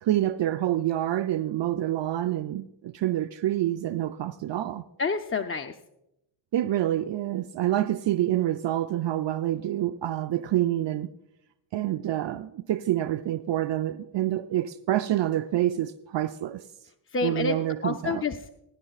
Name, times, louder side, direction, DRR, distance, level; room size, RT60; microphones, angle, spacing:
voice 1, 0.0-4.8 6.5-11.1 11.7-16.6 17.2-18.2, right 13 dB, 65° right, 0.6 m, -27 dB
voice 2, 5.0-5.7 17.1-17.6 17.8-18.6, left 5 dB, 25° left, 0.6 m, -28 dB
20.0 x 11.0 x 2.4 m
cardioid pair, 75°, 48 cm